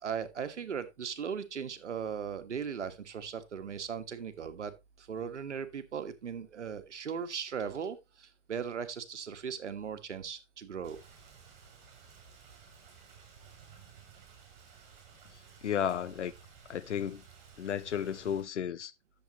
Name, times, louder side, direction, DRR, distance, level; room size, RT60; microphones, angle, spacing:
voice 1, 0.0-4.7 5.0-11.0, right 7 dB, 85° right, 1.6 m, -38 dB
Rain, 10.8-18.4, right 6 dB, 40° right, 6.6 m, -55 dB
voice 2, 15.6-16.3 16.7-17.2 17.6-18.9, left 9 dB, 80° left, 0.9 m, -33 dB
10.5 x 7.6 x 3.0 m
hypercardioid pair, 145°, 35 cm